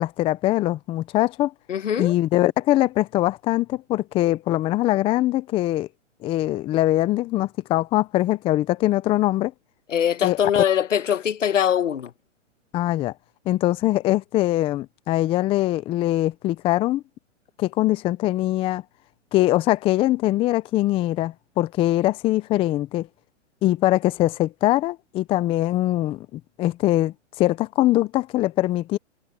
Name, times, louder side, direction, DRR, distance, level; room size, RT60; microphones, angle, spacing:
voice 1, 0.0-1.5 2.0-5.9 6.2-9.5 10.2-10.4 12.7-13.1 13.5-17.0 17.6-18.8 19.3-23.1 23.6-29.0, left 16 dB, 15° left, 0.6 m, -22 dB
voice 2, 1.7-2.1 9.9-12.1, left 9 dB, 80° left, 1.4 m, -22 dB
hypercardioid pair, 135°, 37 cm